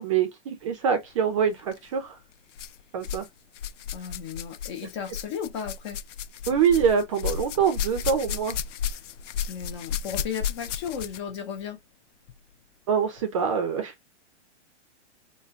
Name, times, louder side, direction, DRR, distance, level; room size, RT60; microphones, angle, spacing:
voice 1, 0.0-2.2 2.9-3.3 6.5-8.6 12.9-13.9, right 7 dB, 30° right, 0.6 m, -24 dB
sound 1, 1.6-1.8 2.5-3.3 3.5-11.3 12.3-12.4 13.2-13.3, left 8 dB, 85° left, 0.6 m, -33 dB
voice 2, 3.9-6.0 9.5-11.8, left 7 dB, 25° left, 0.6 m, -35 dB
4.2 x 2.2 x 3.5 m
hypercardioid pair, 170°, 35 cm